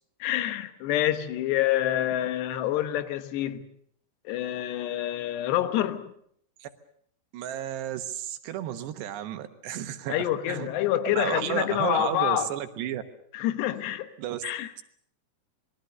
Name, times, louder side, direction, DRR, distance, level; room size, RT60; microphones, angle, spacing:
voice 1, 0.2-3.7 4.3-6.1 10.1-12.5 13.3-14.1 14.4-14.7, left 12 dB, 85° left, 3.4 m, -27 dB
voice 2, 7.3-10.7 11.0-13.0 14.2-14.4, right 11 dB, 90° right, 3.5 m, -32 dB
26.5 x 21.0 x 6.8 m
omnidirectional pair, 4.8 m